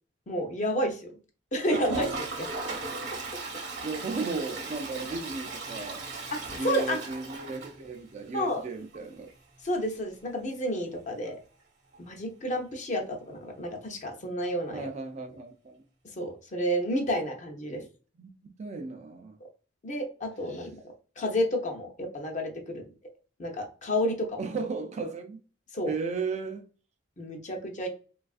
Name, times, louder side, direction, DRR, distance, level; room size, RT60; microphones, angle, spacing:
voice 1, 0.3-1.2 1.5-2.5 6.6-7.0 8.3-8.6 9.6-11.4 12.0-14.9 16.2-17.8 19.8-20.8 21.2-22.9 23.4-24.4 25.7-25.9 27.2-27.9, equal, 40° left, 0.6 m, -30 dB
Toilet flush, 1.6-8.3 8.6-8.7 8.9-9.0 9.3-9.4 11.9-12.0 13.3-13.4, right 3 dB, 60° right, 0.9 m, -37 dB
voice 2, 3.8-6.1 6.6-9.3 14.7-15.8 17.7-17.9 18.2-19.4 24.4-25.4 25.9-26.7, right 4 dB, 35° right, 0.3 m, -35 dB
3.3 x 2.3 x 2.3 m
head